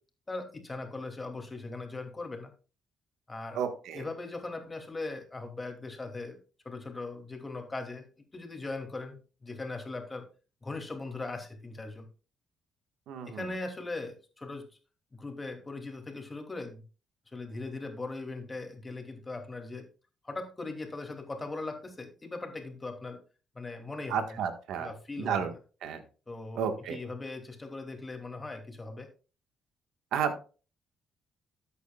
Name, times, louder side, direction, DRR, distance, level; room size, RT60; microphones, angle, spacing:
voice 1, 0.3-2.5 3.3-3.6 3.9-6.4 6.6-8.1 8.3-10.3 10.6-12.1 13.3-14.7 15.1-16.8 17.3-19.9 20.2-23.2 23.5-24.5 24.8-25.6 26.3-29.1, left 3 dB, 20° left, 4 dB, 2.7 m, -39 dB
voice 2, 3.5-4.0 13.1-13.5 24.1-24.9 25.2-25.5 25.8-26.0 26.5-27.0 30.1-30.4, right 7 dB, 85° right, 7 dB, 1.6 m, -32 dB
13.0 x 8.5 x 2.4 m, 0.35 s
cardioid pair, 90°, 0 cm